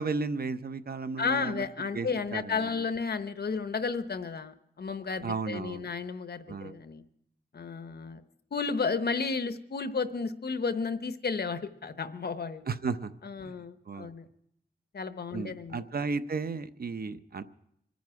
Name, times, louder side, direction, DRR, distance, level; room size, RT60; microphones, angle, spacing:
voice 1, 0.0-1.6 1.9-2.8 5.2-5.9 6.5-6.8 12.7-13.1 13.4-13.5 13.9-14.1 15.3-17.4, right 4 dB, 70° right, 12 dB, 0.7 m, -34 dB
voice 2, 1.2-7.0 7.5-8.2 8.5-12.6 13.2-14.3 14.9-15.8, left 5 dB, 80° left, 10 dB, 0.9 m, -33 dB
26.0 x 9.4 x 4.7 m, 0.74 s
wide cardioid pair, 70°, 16 cm